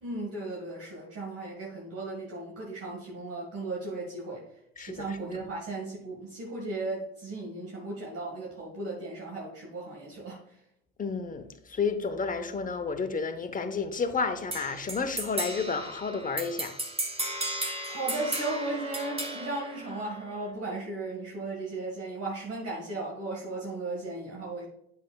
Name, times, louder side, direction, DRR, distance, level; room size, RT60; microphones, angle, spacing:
voice 1, 0.0-4.4 4.8-10.4 17.6-24.6, right 2 dB, 50° right, 1.8 m, -36 dB
voice 2, 4.8-5.1 11.0-16.7, left 5 dB, 25° left, 0.9 m, -31 dB
sound 1, 14.5-20.5, right 1 dB, 20° right, 1.4 m, -35 dB
8.3 x 6.5 x 2.3 m
supercardioid pair, 70°, 29 cm